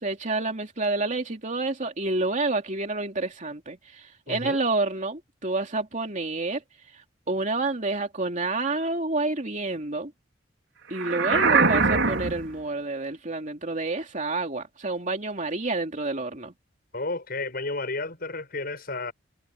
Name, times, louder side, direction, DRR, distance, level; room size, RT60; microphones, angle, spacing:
voice 1, 0.0-6.6 7.3-10.1 10.9-16.5, right 2 dB, 40° right, 3.0 m, -29 dB
voice 2, 4.3-4.6 11.3-11.8 16.9-19.1, left 3 dB, 50° left, 6.9 m, -32 dB
sound 1, 10.9-12.5, right 4 dB, 80° right, 5.0 m, -22 dB
head